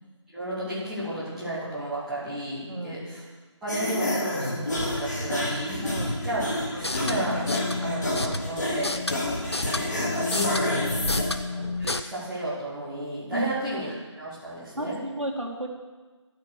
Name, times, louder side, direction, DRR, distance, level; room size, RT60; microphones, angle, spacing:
voice 1, 0.3-3.2 3.6-5.9 6.2-6.4 6.7-7.5 7.8-8.9 9.6-10.9 11.5-15.0, right 1 dB, ahead, -14 dB, 1.2 m, -33 dB
voice 2, 2.7-3.0 5.8-6.2 11.0-11.2 13.3-13.5 14.8-15.7, right 1 dB, 80° right, 1 dB, 2.5 m, -32 dB
sound 1, 3.7-11.2, left 1 dB, 35° left, 3.8 m, -29 dB
sound 2, 6.7-12.0, left 3 dB, 60° left, 0.9 m, -32 dB
12.5 x 9.4 x 6.4 m, 1.3 s
figure-of-eight pair, 165°, 16 cm